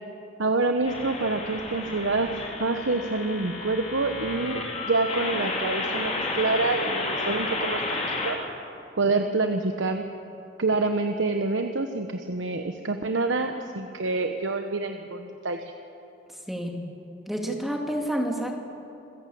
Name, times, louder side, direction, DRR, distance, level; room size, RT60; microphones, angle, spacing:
voice 1, 0.4-8.4 9.0-10.1 10.6-15.7, right 3 dB, 80° right, 6 dB, 1.0 m, -27 dB
sound 1, 0.8-8.3, left 2 dB, 35° left, 3.2 m, -31 dB
voice 2, 16.5-16.8 17.3-18.5, equal, ahead, 1 dB, 2.4 m, -29 dB
27.0 x 14.5 x 8.6 m, 2.9 s
head